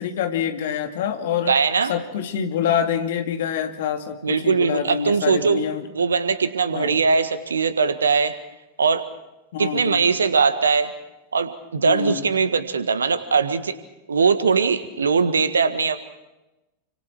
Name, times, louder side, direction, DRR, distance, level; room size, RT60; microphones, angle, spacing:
voice 1, 0.0-1.6 1.9-5.9 6.7-7.0 9.5-10.1 11.8-12.3, left 8 dB, 55° left, 6 dB, 2.4 m, -26 dB
voice 2, 1.4-1.9 4.2-5.6 5.9-8.4 8.8-9.0 9.6-10.9 11.3-13.7 14.1-16.0, right 5 dB, 70° right, 12 dB, 1.6 m, -20 dB
29.5 x 25.5 x 4.6 m, 0.99 s
figure-of-eight pair, 90°, 0 cm